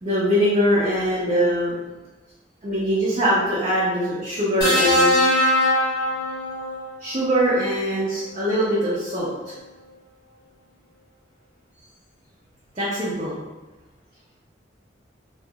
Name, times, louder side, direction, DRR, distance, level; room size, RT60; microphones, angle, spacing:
voice 1, 0.0-1.9 2.6-5.2 7.0-9.3 12.8-13.4, equal, 35° right, -9 dB, 0.6 m, -22 dB
sound 1, 4.6-6.9 8.2-8.4, left 1 dB, 55° left, 1.3 m, -20 dB
2.8 x 2.4 x 2.2 m, 1.2 s
head